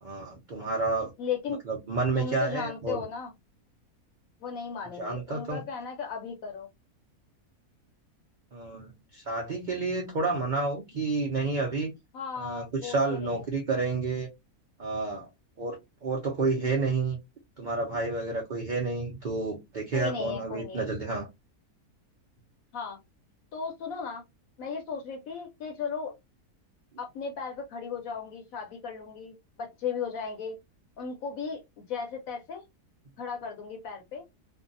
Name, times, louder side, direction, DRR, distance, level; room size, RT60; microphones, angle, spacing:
voice 1, 0.0-1.1 1.7-3.0 5.0-5.6 8.5-11.9 12.4-14.3 14.8-15.3 15.6-17.2 17.6-21.3, right 3 dB, 60° right, 0.4 m, -30 dB
voice 2, 1.2-1.6 2.2-3.3 4.4-6.7 12.1-13.4 19.9-20.9 22.7-23.0 23.5-24.2 24.6-26.2 27.0-30.6 31.0-32.6 33.2-34.2, left 6 dB, 70° left, 1.0 m, -36 dB
2.6 x 2.3 x 2.5 m
omnidirectional pair, 1.6 m